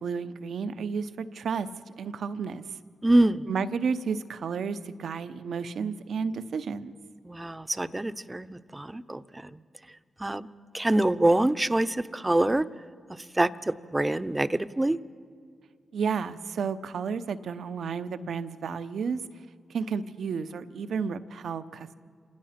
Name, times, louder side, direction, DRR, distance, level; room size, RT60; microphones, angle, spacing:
voice 1, 0.0-1.7 2.0-2.6 3.5-6.9 15.9-19.2 19.7-21.9, right 6 dB, 75° right, 13 dB, 0.8 m, -32 dB
voice 2, 3.0-3.5 7.3-9.2 10.2-10.5 10.7-12.7 13.4-15.0, right 1 dB, 20° right, 15 dB, 0.8 m, -25 dB
27.5 x 17.0 x 5.9 m, 2.2 s
supercardioid pair, 40°, 0 cm